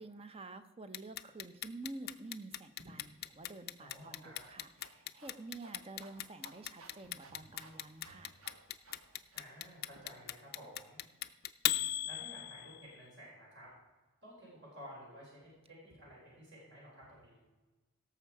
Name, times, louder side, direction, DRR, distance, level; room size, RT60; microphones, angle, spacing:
voice 1, 0.0-8.3, right 2 dB, 30° right, 10 dB, 0.7 m, -49 dB
Clock, 0.9-12.9, left 13 dB, 50° left, 0.5 m, -37 dB
sound 1, 2.8-10.0, right 2 dB, 90° right, 1.4 m, -60 dB
voice 2, 3.8-4.4 9.3-11.0 12.1-13.7 14.2-17.4, equal, 60° right, -5 dB, 4.9 m, -53 dB
17.0 x 7.0 x 4.7 m, 1.2 s
head